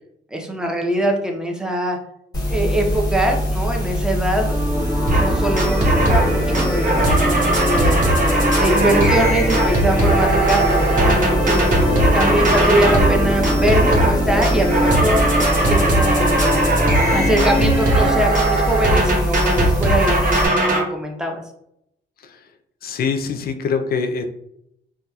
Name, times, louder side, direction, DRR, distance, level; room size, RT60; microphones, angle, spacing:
voice 1, 0.3-2.0 2.5-4.6 5.1-8.0 8.6-11.8 12.1-15.3 15.7-16.5 17.1-21.4, right 1 dB, 5° right, 2 dB, 0.5 m, -22 dB
sound 1, 2.3-20.5, equal, 20° left, 1.2 m, -23 dB
sound 2, 4.4-18.1, equal, 20° right, 1.3 m, -23 dB
sound 3, 5.1-5.3 5.6-6.3 6.5-13.2 13.4-14.2 14.4-20.8, right 2 dB, 40° right, 0.8 m, -19 dB
voice 2, 8.8-9.8 11.9-12.2 22.2-22.5 22.8-24.2, left 5 dB, 50° left, 6 dB, 0.4 m, -26 dB
2.7 x 2.2 x 2.3 m, 0.77 s
cardioid pair, 90°, 20 cm